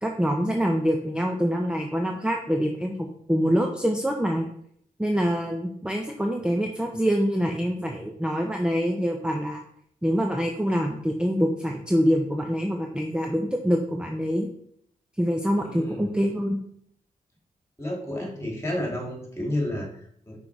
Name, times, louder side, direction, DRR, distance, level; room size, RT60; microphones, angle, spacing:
voice 1, 0.0-2.9 3.3-4.5 5.0-9.6 10.0-14.5 15.2-16.6, equal, 5° right, 3 dB, 0.7 m, -25 dB
voice 2, 15.5-16.2 17.8-20.3, left 1 dB, 20° left, 0 dB, 2.4 m, -31 dB
5.8 x 3.8 x 4.7 m, 0.67 s
cardioid pair, 65°, 15 cm